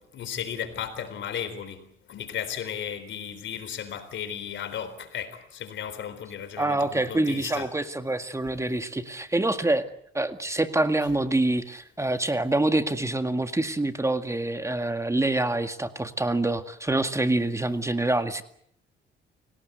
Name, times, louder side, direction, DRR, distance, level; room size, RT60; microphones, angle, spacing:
voice 1, 0.1-7.7, left 9 dB, 70° left, 4.0 m, -35 dB
voice 2, 6.6-9.9 10.1-18.4, right 2 dB, 15° right, 1.9 m, -26 dB
29.5 x 18.0 x 8.1 m
cardioid pair, 90°, 20 cm